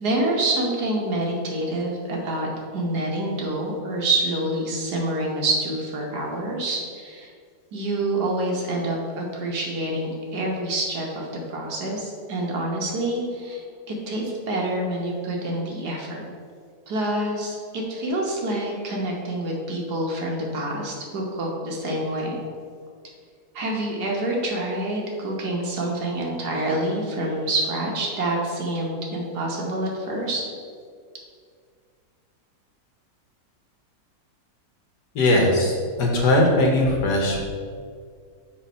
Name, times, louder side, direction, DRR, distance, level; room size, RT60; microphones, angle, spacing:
voice 1, 0.0-7.3 7.7-16.2 16.9-22.4 23.5-30.4, right 1 dB, 60° right, -1 dB, 1.5 m, -27 dB
voice 2, 35.1-37.5, left 1 dB, 65° left, -1 dB, 1.5 m, -20 dB
7.1 x 3.2 x 5.4 m, 2.1 s
omnidirectional pair, 2.0 m